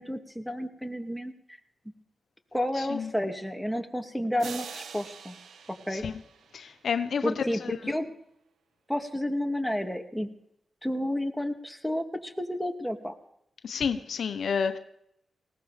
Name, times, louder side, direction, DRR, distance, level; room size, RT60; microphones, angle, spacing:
voice 1, 0.0-1.3 2.5-5.3 5.9-6.0 7.2-8.1 8.9-10.3 10.8-13.1, left 1 dB, ahead, 2.5 m, -31 dB
voice 2, 2.8-3.1 5.9-6.1 6.5-7.9 13.6-14.8, left 6 dB, 75° left, 1.0 m, -30 dB
sound 1, 4.4-7.1, right 6 dB, 85° right, 1.1 m, -44 dB
19.5 x 17.0 x 3.5 m
cardioid pair, 50°, 0 cm